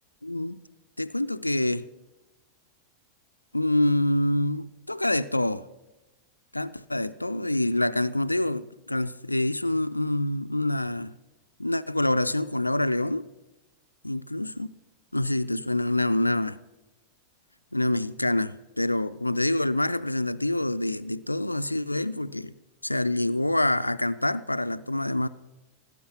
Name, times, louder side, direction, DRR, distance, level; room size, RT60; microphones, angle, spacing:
voice 1, 0.2-0.6 1.0-1.9 3.5-5.6 6.5-11.1 11.6-13.2 14.0-14.7 15.1-16.6 17.7-22.5 22.8-25.3, left 1 dB, 85° left, 0.4 m, -26 dB
18.0 x 8.6 x 5.9 m
figure-of-eight pair, 90°, 0 cm